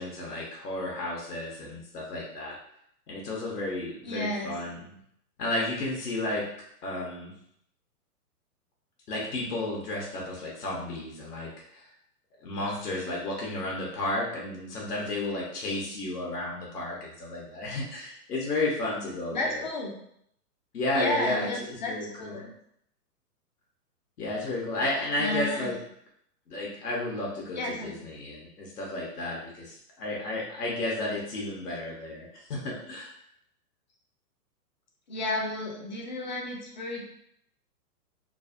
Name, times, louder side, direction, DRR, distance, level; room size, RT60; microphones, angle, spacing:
voice 1, 0.0-2.5 3.1-4.9 5.4-6.5 6.8-7.3 9.1-11.8 12.4-19.6 20.7-22.4 24.2-25.7 26.5-33.1, left 2 dB, 70° left, -3 dB, 1.0 m, -32 dB
voice 2, 4.1-4.5 19.3-19.9 20.9-22.5 25.2-25.8 27.6-27.9 35.1-37.1, left 1 dB, 30° left, 0 dB, 0.4 m, -32 dB
3.1 x 2.1 x 2.4 m, 0.71 s
hypercardioid pair, 120°, 48 cm